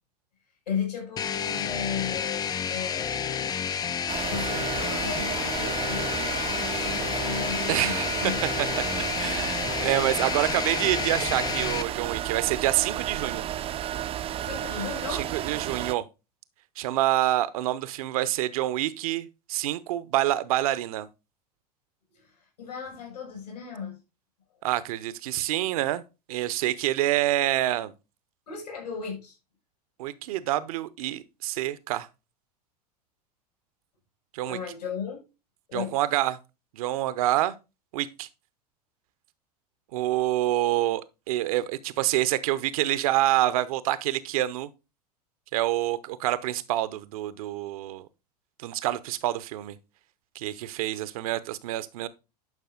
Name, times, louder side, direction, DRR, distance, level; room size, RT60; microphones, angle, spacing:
voice 1, 0.7-3.5 4.3-8.4 14.4-15.3 22.1-22.3 22.6-24.0 28.5-29.3 34.5-35.2 35.7-36.0 50.5-50.7, left 6 dB, 75° left, 6.0 m, -35 dB
sound 1, 1.2-11.8, left 8 dB, 20° left, 0.4 m, -30 dB
sound 2, 4.1-15.9, right 11 dB, 30° right, 0.5 m, -32 dB
voice 2, 7.7-8.3 8.6-8.7 9.0-13.4 15.1-16.0 16.8-21.1 24.6-26.0 26.3-27.9 30.0-32.1 34.3-34.6 35.7-36.4 36.7-37.5 37.9-38.3 39.9-44.7 45.5-48.1 48.6-49.8 50.3-52.1, right 14 dB, 60° right, 0.8 m, -27 dB
11.0 x 5.5 x 3.8 m
figure-of-eight pair, 85°, 21 cm